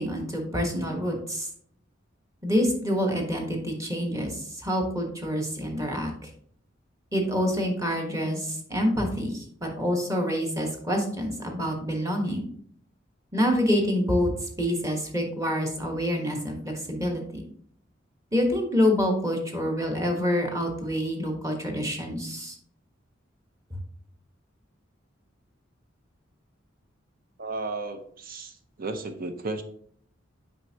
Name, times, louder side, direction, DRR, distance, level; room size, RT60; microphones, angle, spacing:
voice 1, 0.0-1.5 2.4-6.1 7.1-12.5 13.3-14.3 14.6-17.4 18.3-22.5, equal, 15° right, 2 dB, 1.3 m, -27 dB
voice 2, 27.4-29.6, right 3 dB, 50° right, 8 dB, 0.7 m, -34 dB
7.8 x 5.2 x 2.8 m, 0.62 s
head